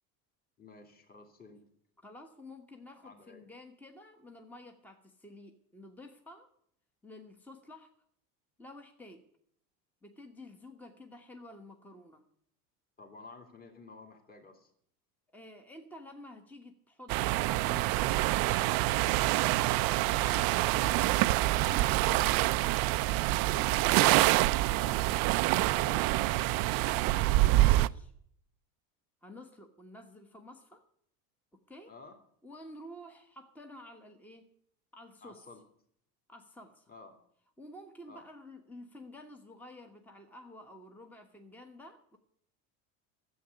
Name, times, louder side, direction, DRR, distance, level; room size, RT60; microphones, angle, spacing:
voice 1, 0.6-1.6 3.0-3.4 13.0-14.7 24.3-24.6 31.9-32.2 35.2-35.6 36.9-37.1 38.1-38.2, left 3 dB, 20° left, 3 dB, 2.5 m, -52 dB
voice 2, 2.0-6.5 7.0-7.9 8.6-9.2 10.0-12.3 15.3-22.7 23.5-25.2 25.7-26.2 26.8-28.1 29.2-30.8 31.5-31.9 32.4-34.5 34.9-35.4 36.3-36.9 37.6-42.2, left 1 dB, 5° left, 5 dB, 1.2 m, -51 dB
sound 1, 17.1-27.9, right 18 dB, 50° right, 0.5 m, -26 dB
11.0 x 8.1 x 9.8 m, 0.67 s
supercardioid pair, 110°, 45 cm